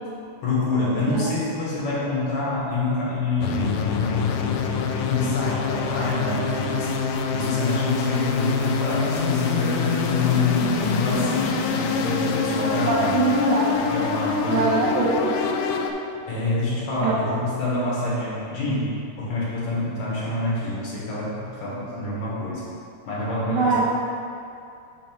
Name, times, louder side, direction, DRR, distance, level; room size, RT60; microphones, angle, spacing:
voice 1, 0.4-4.6 5.1-6.9 7.3-13.3 13.9-14.9 16.3-22.6 23.1-23.8, left 2 dB, 55° left, -7 dB, 2.4 m, -26 dB
sound 1, 3.4-15.9, left 5 dB, 85° left, 2.1 m, -25 dB
voice 2, 12.9-13.8 14.5-15.4 17.0-17.4 23.5-23.8, right 3 dB, 80° right, -5 dB, 1.7 m, -23 dB
6.1 x 5.7 x 4.5 m, 2.5 s
omnidirectional pair, 4.7 m